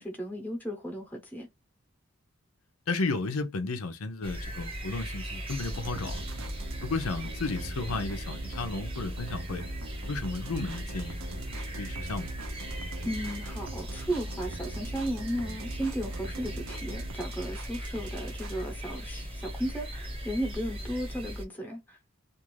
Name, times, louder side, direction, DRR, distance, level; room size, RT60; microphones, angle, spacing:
voice 1, 0.0-1.5 13.0-22.0, equal, 10° left, 0.8 m, -35 dB
voice 2, 2.9-6.2 6.8-9.6 10.1-12.3, left 3 dB, 90° left, 0.6 m, -33 dB
sound 1, 4.2-21.4, equal, 25° right, 0.8 m, -38 dB
sound 2, 5.6-18.6, right 3 dB, 70° right, 0.6 m, -42 dB
2.5 x 2.5 x 3.1 m
head